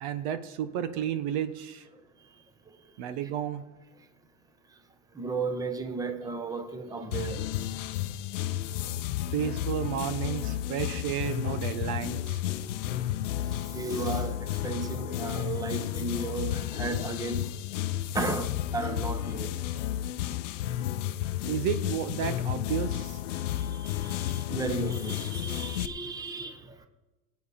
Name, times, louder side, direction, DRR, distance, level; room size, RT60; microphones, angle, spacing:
voice 1, 0.0-1.8 3.0-3.6 9.3-12.4 21.4-23.2, right 9 dB, 60° right, 1.1 m, -32 dB
voice 2, 5.2-7.4 13.7-17.5 18.1-19.5 23.6-26.6, right 3 dB, 10° right, 1.0 m, -34 dB
sound 1, 7.1-25.9, left 12 dB, 90° left, 0.7 m, -32 dB
19.0 x 8.5 x 4.2 m
supercardioid pair, 125°, 36 cm